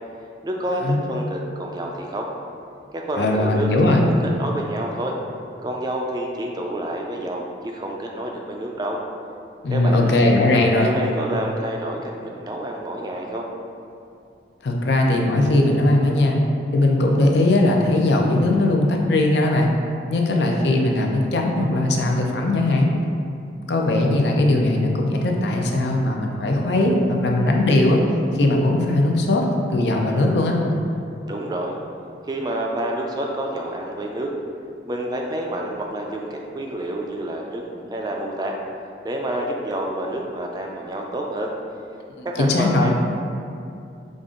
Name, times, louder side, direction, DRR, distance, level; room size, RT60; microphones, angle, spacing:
voice 1, 0.4-2.3 2.9-5.1 5.6-9.0 9.7-10.2 10.8-13.5 31.3-31.7 32.3-34.3 34.9-38.6 39.0-41.5 42.2-42.9, right 1 dB, 20° right, 0 dB, 0.3 m, -28 dB
voice 2, 3.2-4.1 9.6-10.9 14.6-16.4 16.7-19.7 20.1-22.9 23.7-28.0 28.3-29.4 29.7-30.6 42.2-42.9, left 2 dB, 70° left, 1 dB, 0.5 m, -19 dB
5.1 x 2.5 x 3.7 m, 2.5 s
head